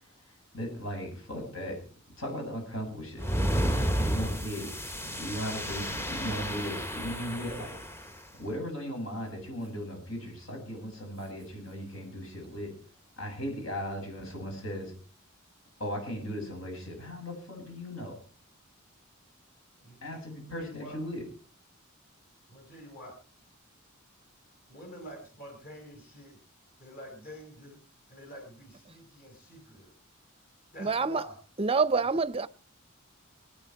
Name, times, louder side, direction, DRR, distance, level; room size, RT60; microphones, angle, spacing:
voice 1, 0.2-1.8 2.2-3.3 3.9-8.1 8.4-12.7 13.2-14.9 15.8-18.2 20.0-21.2, equal, 70° left, 7.5 m, -37 dB
sound 1, 3.2-8.1, equal, 10° left, 0.9 m, -31 dB
voice 2, 19.8-21.0 22.5-23.2 24.7-26.4 26.8-27.8 28.1-29.9 30.7-31.4, equal, 45° left, 4.9 m, -47 dB
voice 3, 30.8-31.2 31.6-32.5, right 4 dB, 25° right, 0.6 m, -26 dB
24.5 x 9.7 x 4.6 m
head